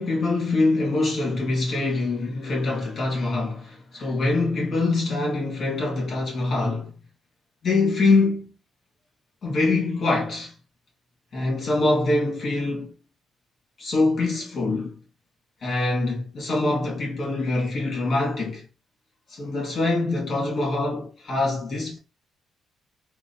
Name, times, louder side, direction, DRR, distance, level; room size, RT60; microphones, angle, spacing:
voice 1, 0.0-6.9 7.6-8.5 9.4-10.5 11.3-12.9 13.8-15.0 15.6-18.7 19.3-22.0, left 2 dB, 50° left, 1.7 m, -24 dB
3.8 x 2.0 x 2.6 m
cardioid pair, 90°, 0 cm